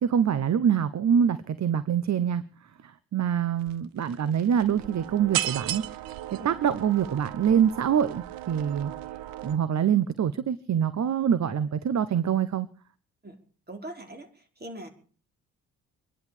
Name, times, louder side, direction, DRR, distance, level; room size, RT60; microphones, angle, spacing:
voice 1, 0.0-2.4 2.8-5.8 6.3-8.9 9.4-12.7, right 8 dB, 50° right, 15 dB, 1.1 m, -25 dB
sound 1, 3.6-3.7 4.0-9.6, right 13 dB, 70° right, 1.0 m, -36 dB
voice 2, 13.7-14.9, right 1 dB, 25° right, 4 dB, 5.0 m, -41 dB
25.5 x 11.0 x 5.0 m, 0.43 s
hypercardioid pair, 45°, 36 cm